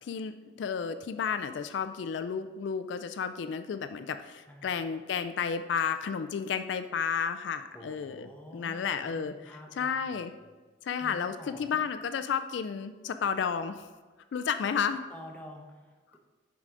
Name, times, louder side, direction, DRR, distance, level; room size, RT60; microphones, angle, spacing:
voice 1, 0.0-9.3 9.7-10.3 10.8-13.9 14.3-15.0, left 6 dB, 75° left, 9 dB, 0.3 m, -32 dB
voice 2, 7.7-10.4 11.0-11.8 15.1-16.2, equal, 10° left, 0 dB, 0.8 m, -48 dB
7.4 x 4.8 x 3.8 m, 1.4 s
head